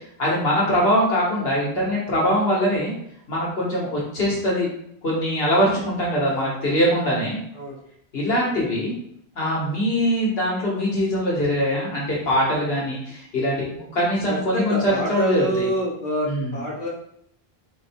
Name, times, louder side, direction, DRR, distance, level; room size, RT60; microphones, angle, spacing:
voice 1, 0.2-2.9 3.3-4.7 5.0-7.4 8.1-8.9 9.4-15.7 16.2-16.6, equal, 75° left, -4 dB, 1.4 m, -22 dB
voice 2, 14.3-16.9, right 1 dB, 50° left, -5 dB, 1.3 m, -26 dB
4.2 x 2.2 x 4.4 m, 0.70 s
omnidirectional pair, 1.0 m